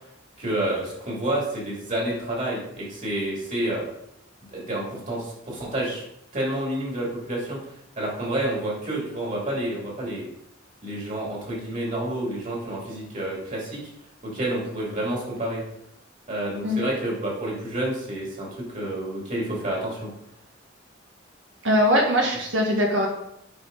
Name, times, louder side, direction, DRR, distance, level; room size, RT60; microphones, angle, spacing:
voice 1, 0.4-3.8 4.5-6.0 6.3-7.6 8.0-10.3 10.8-13.8 14.2-15.6 16.3-20.1, right 1 dB, 40° right, -3 dB, 2.9 m, -29 dB
voice 2, 21.6-23.1, equal, 70° right, -1 dB, 1.7 m, -21 dB
8.6 x 6.3 x 4.0 m, 0.77 s
head